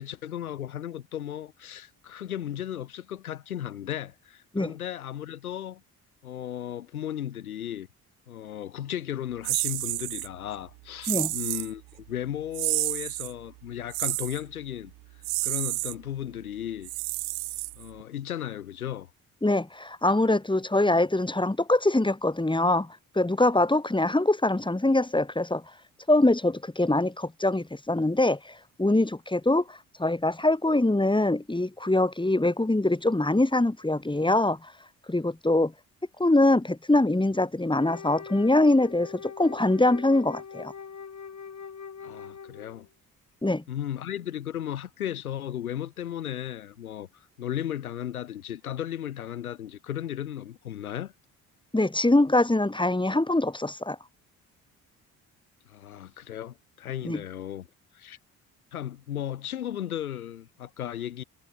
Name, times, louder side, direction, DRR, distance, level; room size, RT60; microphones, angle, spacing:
voice 1, 0.0-5.8 6.2-7.9 8.3-14.9 15.4-16.9 17.8-19.1 42.0-42.9 43.7-51.1 55.7-57.7 57.9-58.2 58.7-61.2, left 11 dB, 90° left, 6.2 m, -35 dB
sound 1, 9.4-10.3 11.0-11.7 12.5-13.3 13.9-14.4 15.2-15.9 16.8-18.0, right 26 dB, 70° right, 1.2 m, -30 dB
voice 2, 19.4-25.6 26.1-28.5 28.8-34.6 35.1-35.7 36.2-40.7 43.4-43.6 51.7-54.0 57.0-57.2, left 2 dB, 10° left, 3.8 m, -23 dB
Wind instrument woodwind instrument, 37.7-42.9, left 6 dB, 40° left, 5.5 m, -42 dB
hypercardioid pair, 50°, 42 cm